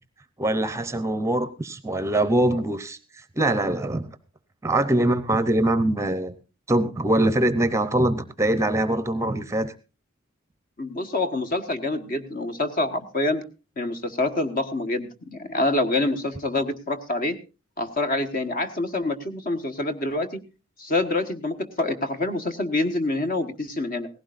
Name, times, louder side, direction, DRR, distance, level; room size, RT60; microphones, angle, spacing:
voice 1, 0.4-4.1 4.6-6.3 6.7-9.7, right 1 dB, 15° right, 13 dB, 0.7 m, -23 dB
voice 2, 10.8-13.4 13.8-17.4 17.8-20.4 20.8-24.1, left 2 dB, 40° left, 8 dB, 1.5 m, -26 dB
18.0 x 16.0 x 2.5 m, 0.31 s
head